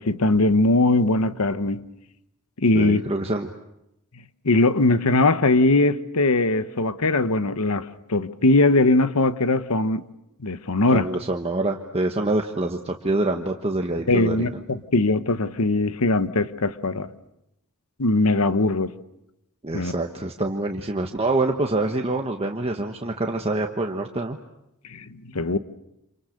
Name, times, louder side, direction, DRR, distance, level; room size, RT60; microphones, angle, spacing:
voice 1, 0.0-1.8 2.6-3.0 4.4-10.0 10.4-11.1 14.1-17.1 18.0-18.9 19.7-19.9 24.9-25.6, left 2 dB, 75° left, 1.1 m, -20 dB
voice 2, 2.7-3.5 10.9-14.5 19.6-24.4, right 2 dB, 25° right, 1.3 m, -26 dB
29.0 x 27.5 x 6.6 m
head